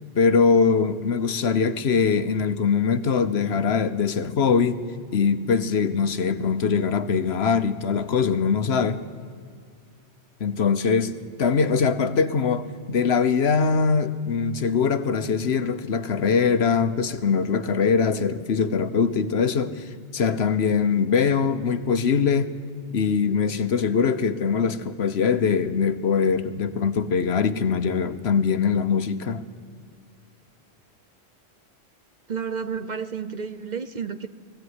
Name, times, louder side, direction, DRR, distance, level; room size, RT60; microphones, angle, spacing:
voice 1, 0.1-4.8 5.1-9.0 10.4-22.5 22.9-29.4, left 5 dB, 70° left, 11 dB, 1.2 m, -22 dB
voice 2, 32.3-34.3, right 6 dB, 45° right, 11 dB, 0.9 m, -31 dB
20.5 x 15.5 x 9.6 m, 2.2 s
omnidirectional pair, 1.1 m